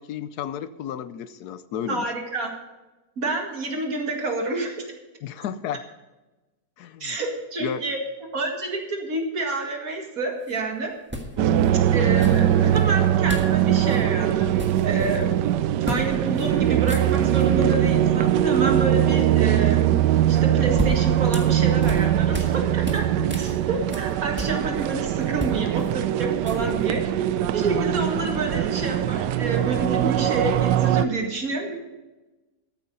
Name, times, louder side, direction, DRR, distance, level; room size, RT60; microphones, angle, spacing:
voice 1, 0.0-2.1 5.2-5.8 6.8-7.2 7.6-7.8 11.4-11.7, left 9 dB, 75° left, 14 dB, 1.1 m, -33 dB
voice 2, 1.9-2.5 3.2-4.8 7.0-8.0 8.3-10.9 11.9-15.3 15.9-27.0 27.5-31.8, right 2 dB, 55° right, 2 dB, 2.3 m, -28 dB
sound 1, 10.4-10.6 11.1-11.7 12.2-12.8 13.3-13.6 13.8-14.0 14.3-15.2 15.8-16.1 16.4-16.5 16.8-17.5 20.3-22.6 22.8-24.9 25.2-26.9, equal, 5° right, 1.3 m, -34 dB
sound 2, 11.4-31.1, right 11 dB, 85° right, 1.2 m, -21 dB
14.0 x 8.6 x 5.3 m, 1.1 s
omnidirectional pair, 1.8 m